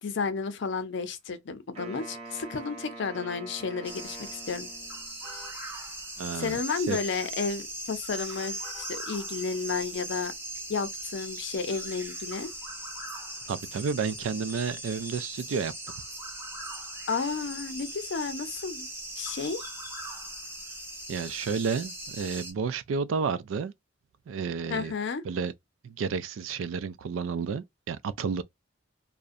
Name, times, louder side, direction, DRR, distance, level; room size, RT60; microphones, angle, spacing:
voice 1, 0.0-4.7 6.3-10.3 10.7-12.5 17.1-18.9 19.2-19.7 24.7-25.2, left 5 dB, 65° left, 0.5 m, -32 dB
Wind instrument woodwind instrument, 1.7-5.2, right 2 dB, 35° right, 1.0 m, -44 dB
sound 1, 3.8-22.5, right 1 dB, 10° right, 0.7 m, -39 dB
sound 2, 5.2-5.6 6.9-7.3 8.4-8.9, equal, 5° left, 1.1 m, -49 dB
voice 2, 6.2-7.0 13.5-15.7 21.1-23.7 24.3-24.9 25.2-25.5 25.8-28.4, right 5 dB, 90° right, 0.4 m, -31 dB
2.4 x 2.1 x 2.5 m
head